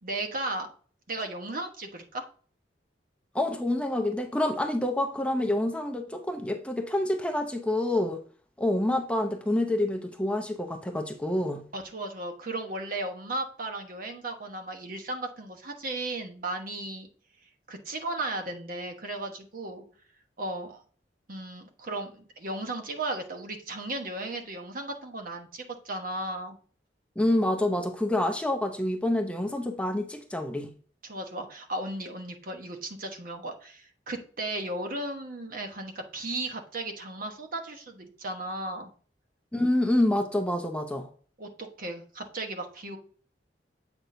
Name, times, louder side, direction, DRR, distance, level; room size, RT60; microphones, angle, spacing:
voice 1, 0.0-0.7 1.1-2.2 11.7-17.1 17.7-19.8 20.4-20.8 21.3-26.6 31.0-38.9 41.4-43.0, right 2 dB, 50° right, 1.1 m, -35 dB
voice 2, 3.3-8.2 8.6-11.6 27.2-30.7 39.5-41.1, left 1 dB, 5° left, 0.6 m, -27 dB
7.9 x 5.9 x 2.6 m
head